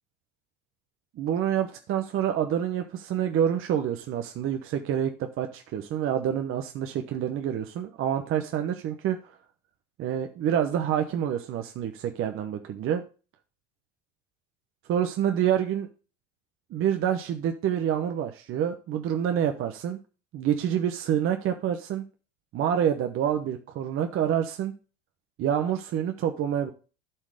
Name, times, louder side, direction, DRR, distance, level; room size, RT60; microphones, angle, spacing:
voice 1, 1.2-9.3 10.0-13.0 14.9-15.9 16.7-20.0 20.3-22.0 22.5-24.7 25.4-26.7, right 9 dB, 40° right, 5 dB, 1.0 m, -27 dB
11.5 x 4.6 x 4.8 m, 0.34 s
supercardioid pair, 125°, 31 cm